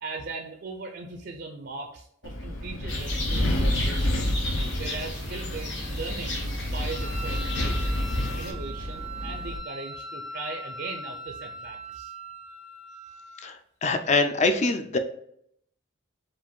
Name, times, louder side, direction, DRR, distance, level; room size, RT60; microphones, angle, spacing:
voice 1, 0.0-4.3 4.8-8.0 8.4-12.1, right 3 dB, 55° right, 4 dB, 0.5 m, -39 dB
Wind, 2.2-9.6, left 1 dB, 80° left, 0.7 m, -29 dB
sound 1, 2.9-8.5, left 1 dB, 60° left, 1.3 m, -35 dB
Wind instrument woodwind instrument, 6.9-13.5, right 1 dB, 90° right, 0.8 m, -40 dB
voice 2, 13.8-15.0, left 3 dB, 35° left, 7 dB, 0.4 m, -23 dB
4.8 x 2.5 x 3.6 m, 0.70 s
head